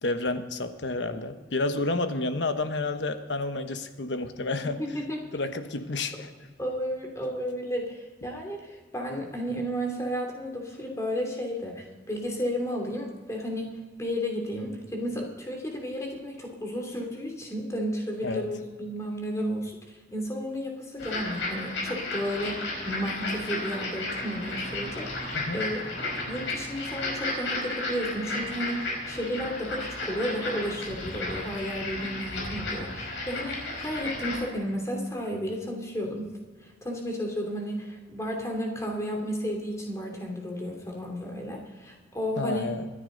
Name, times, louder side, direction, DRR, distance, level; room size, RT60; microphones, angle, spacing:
voice 1, 0.0-4.8 5.3-6.3 18.2-18.5 25.3-25.6 42.4-42.9, left 2 dB, 70° left, 8 dB, 1.1 m, -30 dB
voice 2, 4.8-5.2 6.6-25.9 26.2-36.3 36.8-42.7, equal, 15° left, 1 dB, 2.8 m, -33 dB
sound 1, 21.0-34.4, left 2 dB, 85° left, 4.9 m, -33 dB
24.5 x 10.0 x 3.9 m, 1.4 s
head